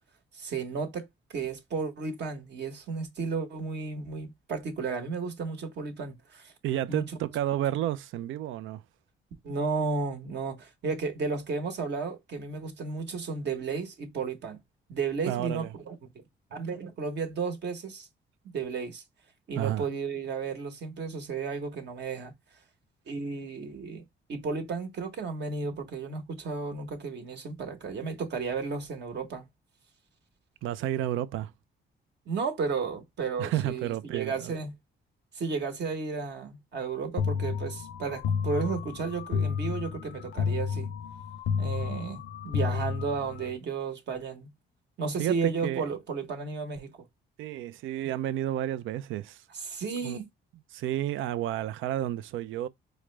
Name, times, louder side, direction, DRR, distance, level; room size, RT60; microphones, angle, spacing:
voice 1, 0.3-1.1 1.3-6.5 6.9-7.1 9.4-14.6 14.9-16.0 16.5-18.1 18.5-19.0 19.5-22.3 23.1-24.0 24.3-29.5 32.3-34.8 35.3-40.9 41.6-44.5 45.0-46.9 49.6-50.3, right 4 dB, 60° right, 1.0 m, -33 dB
voice 2, 6.6-8.8 15.2-15.7 19.6-19.9 30.6-31.5 33.4-34.5 45.2-45.4 45.6-45.9 47.4-49.4 50.0-50.2 50.7-52.7, right 12 dB, 80° right, 0.4 m, -31 dB
sound 1, 37.2-43.5, left 6 dB, 70° left, 0.6 m, -31 dB
4.7 x 2.1 x 3.1 m
cardioid pair, 90°, 20 cm